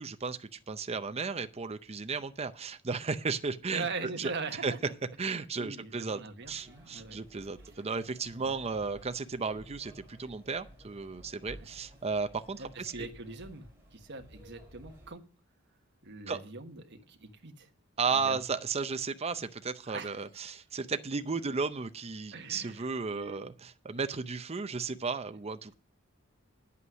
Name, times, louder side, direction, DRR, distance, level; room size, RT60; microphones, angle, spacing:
voice 1, 0.0-3.9 4.2-4.3 4.6-4.7 5.2-6.2 6.5-13.1 16.3-16.4 18.0-25.7, right 4 dB, 30° right, 9 dB, 0.6 m, -34 dB
voice 2, 3.7-4.8 5.3-7.2 8.4-8.6 11.4-11.7 12.6-15.2 16.0-17.7 18.1-18.4 19.9-20.3 22.3-23.4, right 4 dB, 60° right, 5 dB, 1.3 m, -42 dB
sound 1, 6.4-15.1, equal, 10° right, 4.6 m, -55 dB
9.6 x 8.5 x 6.2 m, 0.39 s
head